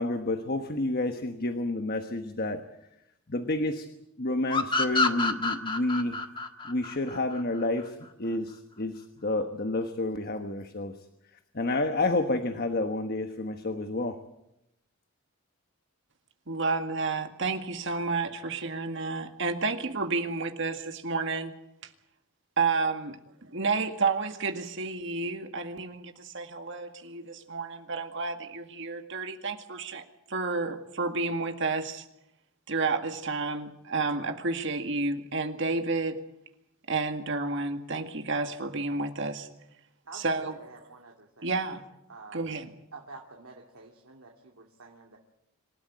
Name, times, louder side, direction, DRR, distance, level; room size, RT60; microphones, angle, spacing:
voice 1, 0.0-2.7 3.3-3.9 4.2-6.2 6.6-11.0 11.5-14.2, left 2 dB, 45° left, 7 dB, 1.2 m, -30 dB
sound 1, 4.5-7.9, left 3 dB, 25° left, 1.4 m, -28 dB
voice 2, 16.5-21.5 22.6-32.1 32.7-36.2 36.9-39.5 40.1-40.6 41.4-41.8 42.3-42.7, right 3 dB, 60° right, 6 dB, 2.0 m, -31 dB
voice 3, 26.8-27.4 40.0-41.8 42.1-42.4 42.9-45.2, right 3 dB, 85° right, 0 dB, 2.4 m, -49 dB
26.5 x 13.5 x 9.4 m, 0.85 s
head